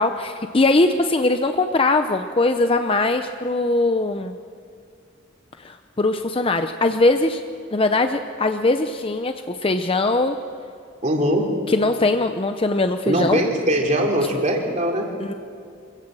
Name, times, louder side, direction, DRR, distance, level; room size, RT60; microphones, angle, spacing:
voice 1, 0.0-4.3 5.6-7.4 7.7-10.4 11.7-13.4 15.2-15.3, left 2 dB, 30° left, 7 dB, 0.7 m, -21 dB
voice 2, 11.0-11.6 13.0-15.1, right 1 dB, 40° right, 1 dB, 3.1 m, -21 dB
25.5 x 16.5 x 7.6 m, 2.3 s
head